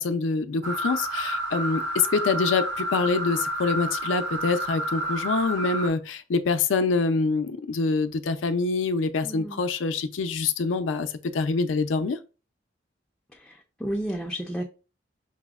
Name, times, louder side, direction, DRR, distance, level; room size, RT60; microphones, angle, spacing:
voice 1, 0.0-12.2, left 4 dB, 80° left, 0.4 m, -25 dB
sound 1, 0.6-5.9, right 1 dB, 65° right, 0.6 m, -30 dB
voice 2, 9.2-9.6 13.8-14.6, right 1 dB, 5° left, 0.4 m, -31 dB
5.8 x 2.0 x 2.3 m
head